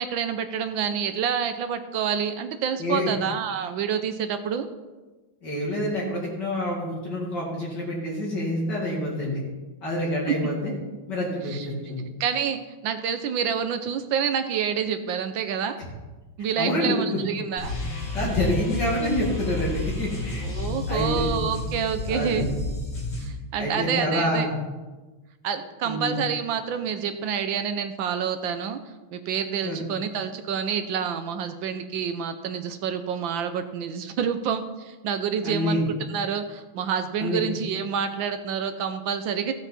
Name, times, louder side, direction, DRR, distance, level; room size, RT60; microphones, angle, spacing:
voice 1, 0.0-4.7 11.5-11.7 12.2-15.8 16.4-17.7 20.4-22.5 23.2-24.5 25.4-28.8 29.1-35.8 36.1-39.5, right 7 dB, 75° right, 9 dB, 1.4 m, -28 dB
voice 2, 2.8-3.1 5.4-9.4 9.8-10.7 11.1-12.1 16.6-17.2 18.1-20.4 20.9-21.3 22.1-22.5 23.6-24.5 25.8-26.2 29.6-29.8 35.4-35.8 37.2-37.4, left 1 dB, 55° left, -4 dB, 2.9 m, -27 dB
sound 1, 17.6-23.3, left 2 dB, 75° left, 3.6 m, -30 dB
15.5 x 8.2 x 4.2 m, 1.2 s
omnidirectional pair, 2.2 m